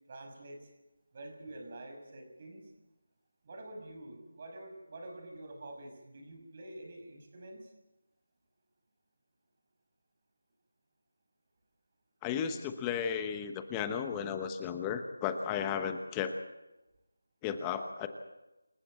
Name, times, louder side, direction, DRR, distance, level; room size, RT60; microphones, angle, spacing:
voice 1, 0.1-0.7 1.1-2.7 3.4-7.7, right 1 dB, 35° right, 4 dB, 5.9 m, -47 dB
voice 2, 12.2-16.3 17.4-18.1, left 7 dB, 10° left, 8 dB, 1.0 m, -34 dB
27.0 x 15.0 x 7.6 m, 0.98 s
figure-of-eight pair, 170°, 0 cm